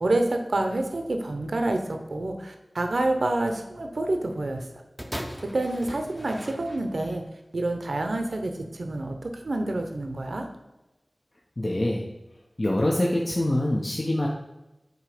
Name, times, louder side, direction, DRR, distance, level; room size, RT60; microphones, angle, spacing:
voice 1, 0.0-4.7 5.5-7.2 7.5-10.5, right 2 dB, 75° right, 5 dB, 0.8 m, -28 dB
sound 1, 5.0-7.2 8.0-8.1, equal, ahead, 0.7 m, -39 dB
voice 2, 11.6-12.1 12.6-14.3, left 1 dB, 40° left, -2 dB, 0.8 m, -25 dB
7.8 x 3.0 x 5.0 m, 0.99 s
wide cardioid pair, 55°, 0 cm